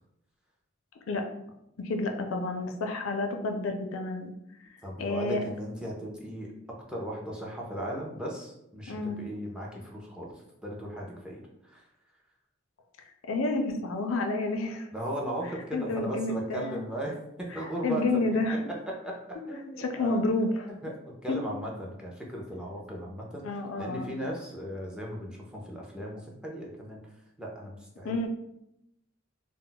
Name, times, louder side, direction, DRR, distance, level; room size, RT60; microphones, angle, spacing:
voice 1, 1.8-4.3 5.0-5.4 8.9-9.2 13.3-14.9 15.4-16.8 17.5-18.6 19.8-20.7 23.4-24.1 28.0-28.3, left 2 dB, 70° left, 4 dB, 0.4 m, -30 dB
voice 2, 4.8-6.5 6.9-10.3 10.6-11.8 14.9-17.1 17.5-18.4 19.0-19.1 19.5-20.2 20.8-23.4 23.8-27.0 27.4-28.1, right 1 dB, 5° right, -3 dB, 0.4 m, -37 dB
2.2 x 2.0 x 3.7 m, 0.81 s
head